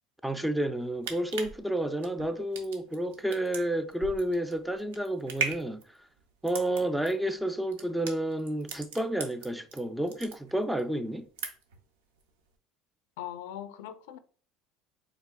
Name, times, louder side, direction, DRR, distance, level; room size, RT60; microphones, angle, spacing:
voice 1, 0.2-5.8 6.4-11.3, right 1 dB, 5° right, 0.4 m, -30 dB
sound 1, 0.8-9.8 10.1-10.8 11.1-11.8 12.2-12.3, right 5 dB, 90° right, 0.6 m, -38 dB
voice 2, 13.2-14.2, left 11 dB, 85° left, 0.4 m, -40 dB
4.7 x 3.3 x 2.2 m
supercardioid pair, 95°, 0 cm